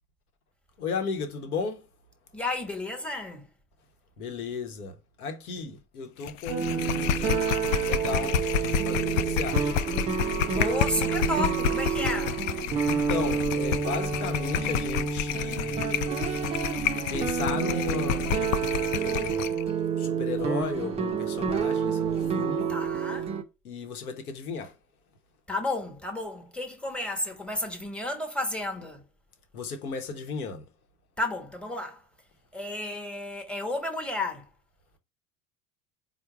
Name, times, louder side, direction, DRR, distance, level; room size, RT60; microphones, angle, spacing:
voice 1, 0.8-1.8 4.2-9.7 12.9-16.0 17.1-18.4 18.9-19.6 20.0-22.7 23.6-24.7 29.5-30.7, left 5 dB, 80° left, 1.0 m, -35 dB
voice 2, 2.3-3.5 5.5-5.7 10.5-12.4 22.7-23.3 25.5-29.0 31.2-32.0 32.5-34.5, left 2 dB, ahead, 1.1 m, -32 dB
sound 1, 6.2-19.6, left 9 dB, 60° left, 0.5 m, -30 dB
sound 2, 6.5-23.4, right 6 dB, 15° right, 0.3 m, -29 dB
4.5 x 2.2 x 4.4 m
hypercardioid pair, 75°, 44 cm